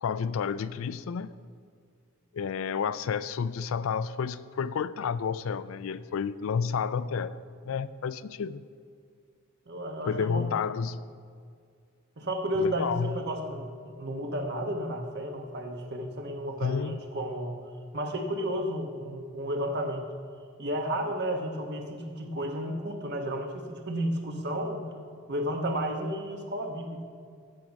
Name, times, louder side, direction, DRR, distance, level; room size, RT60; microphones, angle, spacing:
voice 1, 0.0-1.3 2.3-7.4 7.6-8.6 10.1-11.0 12.6-13.2 16.6-17.0, left 6 dB, 65° left, 0.4 m, -30 dB
voice 2, 9.7-10.5 12.2-17.6 17.9-20.1 20.6-24.8 25.3-27.0, equal, 50° right, 1.2 m, -32 dB
14.5 x 6.0 x 5.2 m
head